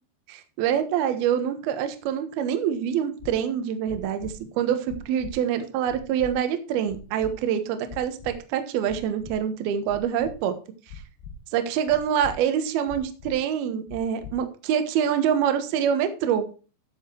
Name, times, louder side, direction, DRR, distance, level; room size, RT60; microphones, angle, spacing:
voice 1, 0.3-10.5 11.5-16.5, right 9 dB, 65° right, 8 dB, 2.6 m, -25 dB
sound 1, 3.2-3.3 3.9-4.3 4.9-5.3 5.9-6.3 6.9-7.3 7.9-8.3 8.9-9.3 9.9-10.3 10.9-11.3 11.9-12.3 12.9-13.3 13.9-14.3, left 8 dB, 65° left, 3.4 m, -41 dB
13.0 x 7.3 x 4.5 m, 0.35 s
omnidirectional pair, 5.9 m